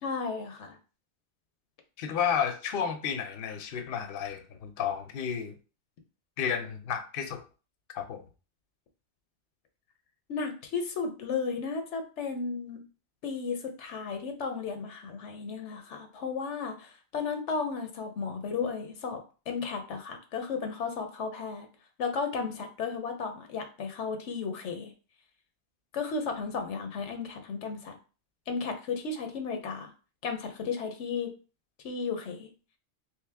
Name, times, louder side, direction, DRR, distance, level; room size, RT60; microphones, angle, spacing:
voice 1, 0.0-0.8 10.3-12.8 13.2-19.2 19.5-21.7 22.0-24.9 25.9-27.9 28.5-29.9 30.2-31.3 31.8-32.5, left 5 dB, 85° left, 1.1 m, -34 dB
voice 2, 2.0-5.5 6.4-7.4 7.9-8.2, left 7 dB, 60° left, 0.7 m, -32 dB
3.2 x 3.0 x 3.4 m
omnidirectional pair, 1.2 m